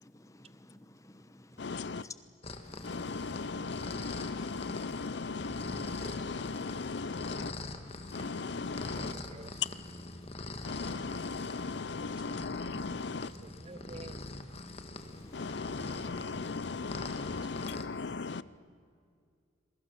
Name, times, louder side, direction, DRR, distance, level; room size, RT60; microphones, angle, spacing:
voice 1, 0.0-1.7 2.0-2.1 2.6-3.1 7.9-8.4 9.1-9.2 10.6-11.0 15.1-15.4 15.8-16.2, left 2 dB, 15° left, 1.0 m, -53 dB
voice 2, 1.6-2.1 2.8-7.5 8.1-9.2 10.6-13.3 15.3-18.4, left 4 dB, 60° left, 0.6 m, -37 dB
sound 1, 2.4-17.9, left 2 dB, 30° left, 1.5 m, -43 dB
voice 3, 9.0-9.6 13.4-14.2, right 2 dB, 30° right, 0.6 m, -49 dB
27.5 x 23.0 x 6.8 m
head